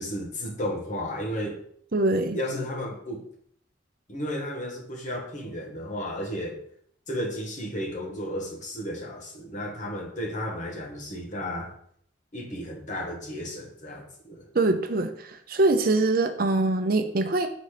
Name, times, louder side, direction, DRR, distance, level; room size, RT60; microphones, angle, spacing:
voice 1, 0.0-1.6 2.3-3.3 4.1-6.6 7.1-11.7 12.3-14.5, equal, 45° left, 1 dB, 1.4 m, -33 dB
voice 2, 1.9-2.4 14.5-17.5, right 2 dB, 50° right, 7 dB, 0.7 m, -23 dB
6.2 x 4.1 x 5.0 m, 0.65 s
head